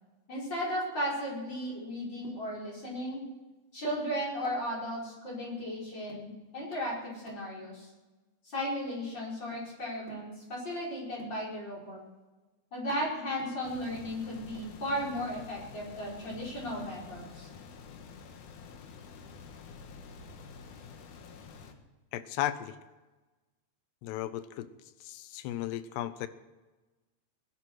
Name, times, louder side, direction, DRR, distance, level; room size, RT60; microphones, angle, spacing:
voice 1, 0.3-3.2 3.7-7.9 8.4-12.0 12.7-17.5, equal, 25° left, -5 dB, 5.5 m, -35 dB
sound 1, 13.6-21.7, left 5 dB, 60° left, 2.3 m, -49 dB
voice 2, 22.1-22.8 24.0-24.7 25.0-26.3, left 13 dB, 90° left, 13 dB, 2.9 m, -35 dB
20.5 x 11.0 x 4.7 m, 1.2 s
omnidirectional pair, 4.7 m